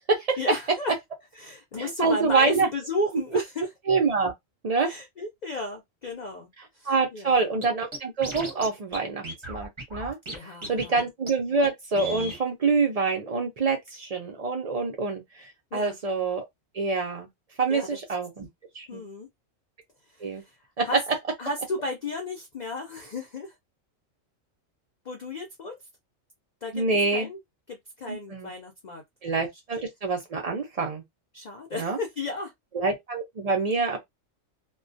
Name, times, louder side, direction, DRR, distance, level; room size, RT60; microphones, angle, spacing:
voice 1, 0.4-0.9 1.4-3.7 4.8-6.5 6.7-7.4 10.3-11.0 15.7-15.9 17.7-18.0 18.9-19.3 20.1-20.6 20.8-21.0 21.4-23.5 25.0-25.8 26.6-26.8 27.1-27.4 27.7-29.0 31.3-32.5, left 2 dB, 60° left, 0.4 m, -34 dB
voice 2, 1.8-2.7 3.9-4.3 4.6-4.9 6.9-10.2 10.7-16.4 16.7-17.3 17.6-18.5 18.7-19.0 20.2-20.4 20.8-20.9 26.7-27.3 28.1-28.5 29.2-31.0 31.8-32.0 32.7-34.0, right 4 dB, 85° right, 0.3 m, -26 dB
Scratching (performance technique), 7.6-7.7 7.9-8.7 8.9-9.0 9.2-10.4 10.6-11.0 11.3-11.4 11.6-11.7 12.0-12.4, right 2 dB, 30° right, 0.6 m, -35 dB
2.2 x 2.2 x 2.5 m
omnidirectional pair, 1.4 m